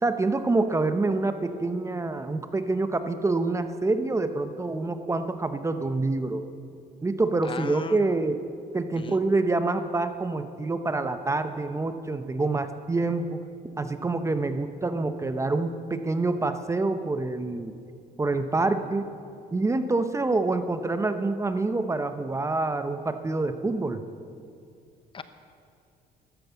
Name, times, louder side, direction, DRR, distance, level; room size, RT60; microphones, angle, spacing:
voice 1, 0.0-6.4 7.0-8.4 8.7-13.4 13.8-17.7 18.2-19.1 19.5-24.0, right 3 dB, 15° right, 9 dB, 0.8 m, -26 dB
voice 2, 7.4-8.0 9.0-9.2 25.1-25.2, left 5 dB, 30° left, 10 dB, 0.8 m, -37 dB
13.5 x 13.0 x 7.0 m, 2.5 s
cardioid pair, 110°, 17 cm